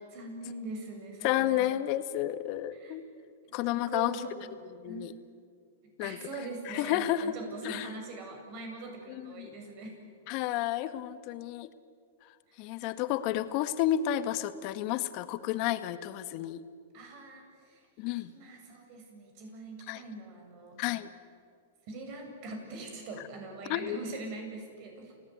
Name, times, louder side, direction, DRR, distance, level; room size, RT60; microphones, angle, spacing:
voice 1, 0.1-1.7 2.7-3.0 3.5-4.6 4.9-5.1 6.0-10.1 12.5-12.7 16.9-17.9 18.1-20.8 21.9-25.1, right 3 dB, 50° right, 3 dB, 7.9 m, -43 dB
voice 2, 1.2-3.0 3.5-4.2 4.8-5.1 6.0-6.2 6.6-7.3 7.6-7.9 9.2-9.5 10.3-11.7 12.6-16.6 18.0-18.3 19.9-20.0 20.8-21.1 23.7-24.0, left 13 dB, 50° left, 10 dB, 1.7 m, -31 dB
30.0 x 18.5 x 9.6 m, 2.2 s
hypercardioid pair, 120°, 0 cm